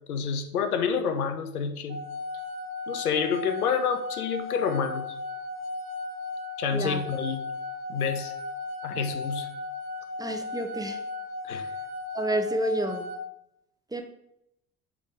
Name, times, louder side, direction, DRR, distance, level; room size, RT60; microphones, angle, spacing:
voice 1, 0.1-2.0 2.9-5.1 6.6-7.4 7.9-8.3 8.8-9.5 11.5-11.6, left 6 dB, 85° left, 8 dB, 0.7 m, -28 dB
sound 1, 1.9-13.2, left 3 dB, 55° right, 1.1 m, -36 dB
voice 2, 6.7-7.0 10.2-11.0 12.1-13.0 13.9-14.0, right 1 dB, 10° right, 5 dB, 0.8 m, -29 dB
6.9 x 3.5 x 4.9 m, 0.80 s
hypercardioid pair, 60°, 43 cm